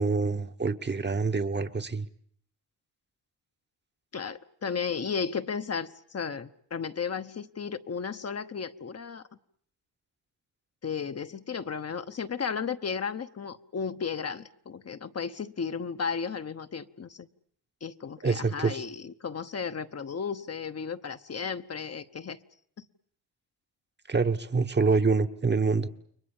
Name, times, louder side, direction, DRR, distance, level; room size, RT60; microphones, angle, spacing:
voice 1, 0.0-2.1 18.2-18.8 24.1-25.9, right 4 dB, 25° right, 1.1 m, -26 dB
voice 2, 4.1-9.2 10.8-17.3 17.8-22.4 22.8-22.9, left 6 dB, 40° left, 1.0 m, -34 dB
30.0 x 22.5 x 7.2 m
cardioid pair, 85°, 39 cm